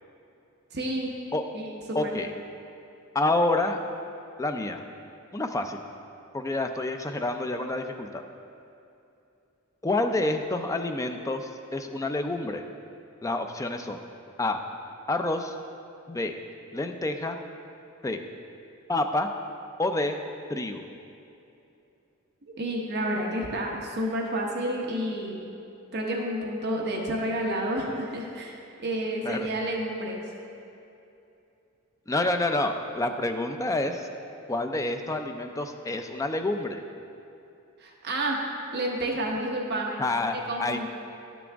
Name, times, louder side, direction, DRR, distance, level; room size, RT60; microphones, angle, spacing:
voice 1, 0.7-1.1 1.5-1.6 1.9-2.1 22.5-25.4 25.9-30.2 37.8-38.4 38.7-40.0 40.3-40.9, right 1 dB, 50° right, -1 dB, 0.9 m, -30 dB
voice 2, 1.9-2.3 3.1-3.8 4.4-4.8 5.3-5.8 6.3-8.2 9.8-12.6 13.2-14.0 14.4-14.6 15.1-15.5 16.1-16.3 16.7-17.4 18.0-18.2 18.9-19.3 19.8-20.2 20.5-20.8 29.2-29.5 32.1-34.1 34.5-36.8 40.0-40.3 40.6-40.9, left 2 dB, 15° left, 6 dB, 0.4 m, -28 dB
12.0 x 6.1 x 3.5 m, 2.7 s
head